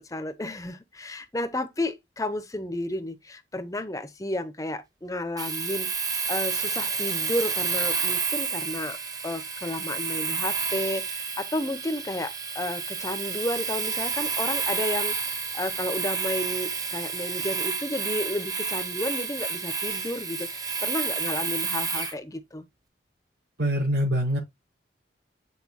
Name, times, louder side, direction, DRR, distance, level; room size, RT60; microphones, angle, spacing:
voice 1, 0.0-5.9 6.3-22.7, left 1 dB, 20° left, 0.7 m, -32 dB
Domestic sounds home sounds, 5.4-22.2, right 5 dB, 20° right, 0.9 m, -30 dB
voice 2, 23.6-24.4, equal, 75° right, 5.2 m, -24 dB
8.3 x 4.4 x 2.8 m
head